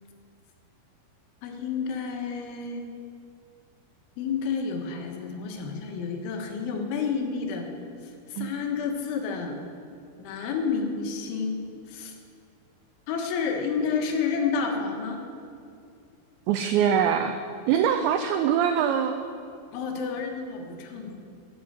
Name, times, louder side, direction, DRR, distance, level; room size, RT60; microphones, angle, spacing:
voice 1, 1.4-2.9 4.2-7.7 8.0-9.6 10.2-11.6 11.9-12.1 13.1-15.2 19.7-21.2, left 5 dB, 75° left, 3 dB, 3.6 m, -30 dB
voice 2, 16.5-17.4 17.7-19.2, right 8 dB, 90° right, 8 dB, 2.5 m, -23 dB
12.0 x 10.5 x 8.0 m, 2.4 s
omnidirectional pair, 5.8 m